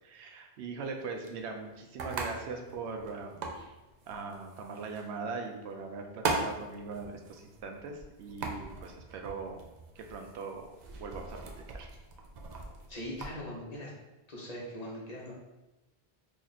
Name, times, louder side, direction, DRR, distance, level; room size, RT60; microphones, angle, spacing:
voice 1, 0.0-3.8 4.1-9.7 10.0-10.7 10.9-11.9, right 4 dB, 90° right, 3 dB, 0.9 m, -41 dB
sound 1, 0.8-13.3, right 3 dB, 55° right, 0.5 m, -41 dB
voice 2, 12.9-13.9 14.3-15.3, left 1 dB, 40° left, -4 dB, 0.9 m, -41 dB
3.1 x 2.4 x 4.0 m, 1.0 s
omnidirectional pair, 1.1 m